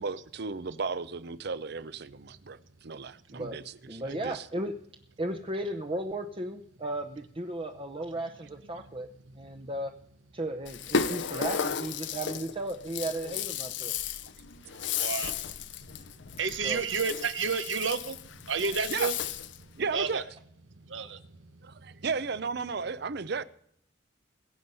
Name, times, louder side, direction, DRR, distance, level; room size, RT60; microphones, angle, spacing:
voice 1, 0.0-4.4 11.0-11.1 14.8-14.9 18.9-19.1 19.8-20.2 21.0-21.1 21.6-23.4, right 4 dB, 60° right, 0.7 m, -35 dB
voice 2, 3.9-4.7 5.2-9.1 9.4-9.9 10.3-13.9 16.6-16.8, right 1 dB, 30° right, 0.8 m, -35 dB
Rattle (instrument), 10.7-19.6, left 6 dB, 70° left, 0.7 m, -34 dB
voice 3, 13.9-14.4 14.8-19.1 19.6-20.2 20.7-22.0, right 5 dB, 85° right, 1.1 m, -33 dB
21.5 x 8.0 x 5.6 m
head